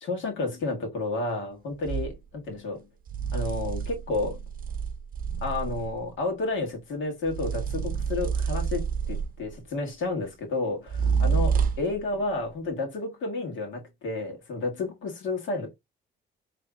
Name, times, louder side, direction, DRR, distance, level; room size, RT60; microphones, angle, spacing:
voice 1, 0.0-2.9 3.3-4.4 5.4-15.7, left 3 dB, 75° left, 1.8 m, -31 dB
sound 1, 1.8-2.2 3.1-6.1 7.3-9.5 10.9-12.0, right 6 dB, 45° right, 0.6 m, -28 dB
4.9 x 3.3 x 2.2 m
cardioid pair, 90°, 20 cm